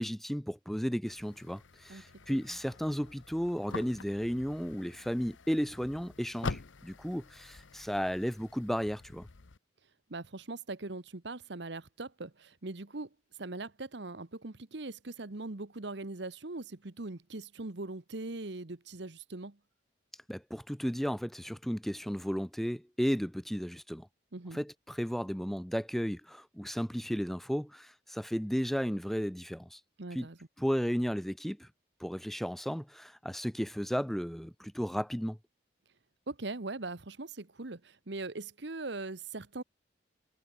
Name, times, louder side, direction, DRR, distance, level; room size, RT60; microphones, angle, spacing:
voice 1, 0.0-9.3 20.3-24.1 24.5-29.8 30.1-30.3 30.6-31.7 32.0-35.4, equal, ahead, 0.7 m, -34 dB
sound 1, 1.0-9.6, left 3 dB, 80° left, 0.9 m, -45 dB
voice 2, 10.1-13.1 13.4-19.6 24.3-24.6 30.0-30.4 36.3-39.6, right 2 dB, 65° right, 1.2 m, -41 dB
head